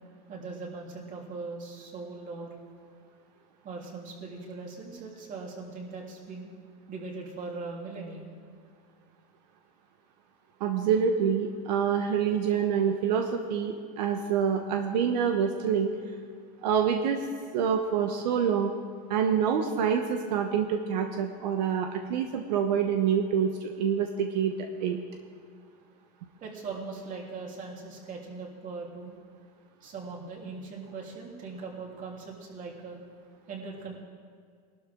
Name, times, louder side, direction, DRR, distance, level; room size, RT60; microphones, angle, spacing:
voice 1, 0.3-2.5 3.6-6.5 6.9-8.3 26.4-29.1 29.8-33.0 33.5-33.9, right 4 dB, 40° right, -2 dB, 3.3 m, -40 dB
voice 2, 10.6-15.9 16.6-17.2 17.5-18.7 19.1-24.5 24.8-25.0, right 7 dB, 85° right, 4 dB, 1.1 m, -26 dB
20.0 x 12.5 x 3.8 m, 2.1 s
supercardioid pair, 130°, 21 cm